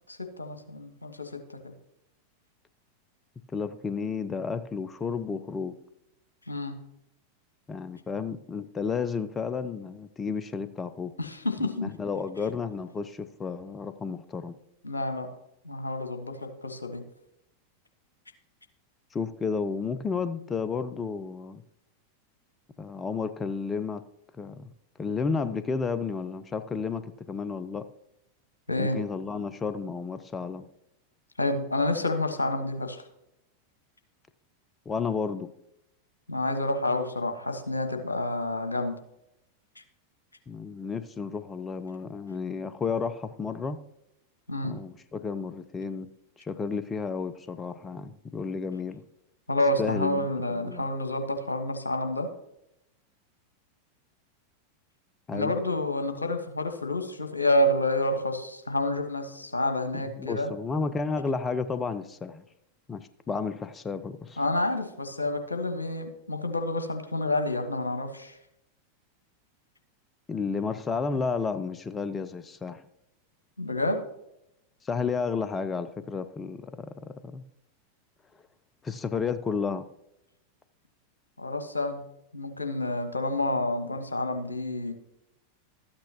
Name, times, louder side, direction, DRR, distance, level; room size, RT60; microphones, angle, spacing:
voice 1, 0.1-1.7 6.5-6.8 11.2-11.9 14.8-15.3 15.6-17.0 28.7-29.0 31.4-33.1 36.3-39.0 39.7-39.8 44.5-44.8 49.5-52.3 55.3-60.5 64.4-68.4 73.6-74.0 81.4-82.0 82.3-84.9, left 1 dB, 85° left, 6 dB, 1.2 m, -29 dB
voice 2, 3.5-5.7 7.7-11.1 11.8-14.6 19.1-21.6 22.8-24.0 24.4-24.7 25.0-27.9 28.8-30.6 34.9-35.5 40.5-43.8 44.6-46.1 46.4-49.0 49.8-50.9 55.3-55.5 60.1-62.4 62.9-64.4 70.3-72.8 74.8-77.4 78.8-79.9, left 5 dB, 20° left, 13 dB, 0.5 m, -32 dB
13.0 x 8.7 x 2.9 m, 0.82 s
figure-of-eight pair, 90°, 0 cm